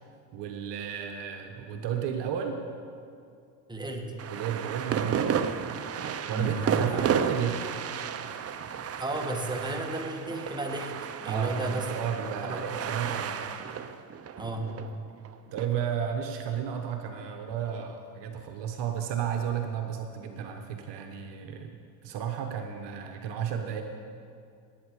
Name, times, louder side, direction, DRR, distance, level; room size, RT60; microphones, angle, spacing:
voice 1, 0.3-2.6 4.3-5.8 6.3-8.0 11.3-13.4 15.5-21.7 22.0-23.8, right 8 dB, 60° right, 5 dB, 1.2 m, -33 dB
voice 2, 3.7-4.1 6.3-7.1 9.0-10.9 11.2-11.9 12.4-12.8 14.4-14.8, right 2 dB, 10° right, 2 dB, 1.9 m, -33 dB
sound 1, 4.2-15.7, right 7 dB, 30° right, 0.7 m, -32 dB
18.0 x 9.1 x 4.9 m, 2.4 s
supercardioid pair, 85°, 48 cm